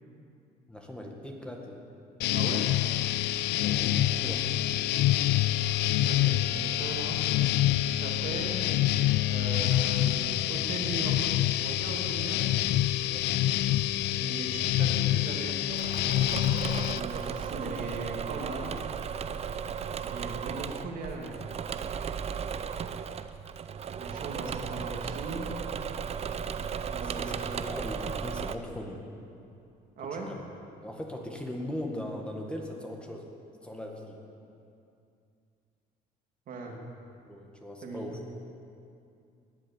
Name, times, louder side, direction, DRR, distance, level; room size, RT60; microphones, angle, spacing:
voice 1, 0.7-1.8 3.6-4.6 13.1-13.3 27.1-27.3 27.6-29.0 30.1-30.4 30.8-33.3 33.6-34.2 36.7-36.9 37.3-38.2, left 1 dB, 5° left, 0 dB, 1.8 m, -39 dB
sound 1, 2.2-17.0, left 13 dB, 80° left, 0.4 m, -27 dB
voice 2, 2.3-2.7 6.0-7.2 7.8-8.6 9.3-11.2 11.6-12.4 14.2-15.6 16.9-18.7 20.0-21.4 24.0-25.5 26.9-27.5 30.0-30.3 36.5-36.7 37.8-38.1, right 3 dB, 55° right, 1 dB, 2.1 m, -38 dB
Engine / Mechanisms, 15.7-28.6, right 7 dB, 40° right, 0.6 m, -35 dB
19.5 x 7.6 x 7.1 m, 2.5 s
cardioid pair, 110°, 17 cm